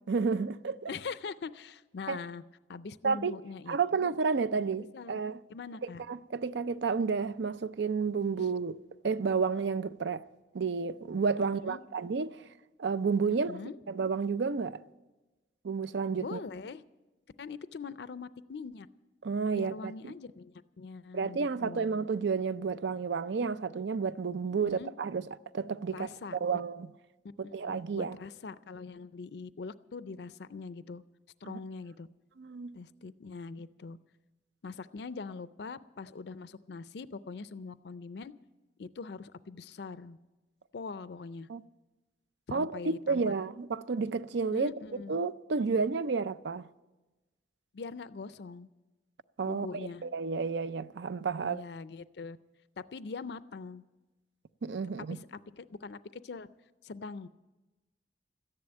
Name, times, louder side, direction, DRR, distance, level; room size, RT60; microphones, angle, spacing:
voice 1, 0.1-0.9 2.1-2.2 3.0-3.3 3.7-5.4 6.1-10.2 10.5-12.4 12.8-13.6 13.9-14.8 15.6-16.4 19.2-20.1 21.1-25.3 25.5-26.1 26.4-26.9 27.5-28.2 31.4-31.6 32.4-32.8 41.5-41.6 42.5-44.7 45.1-46.7 49.4-49.7 50.0-51.6 54.6-55.2, right 5 dB, 70° right, 0.5 m, -31 dB
voice 2, 0.9-2.4 2.7-4.1 4.9-5.2 5.5-6.0 8.4-8.5 11.5-11.8 13.3-13.8 16.2-16.8 17.4-18.9 19.5-21.9 24.4-24.9 25.9-26.4 27.4-31.0 31.4-32.1 32.7-34.0 34.6-38.3 38.8-40.2 40.7-41.5 42.5-43.3 44.5-45.2 47.7-48.7 49.4-50.0 51.4-52.4 52.8-53.8 55.0-56.5 56.8-57.3, left 4 dB, 65° left, 0.4 m, -43 dB
13.5 x 10.5 x 8.8 m
head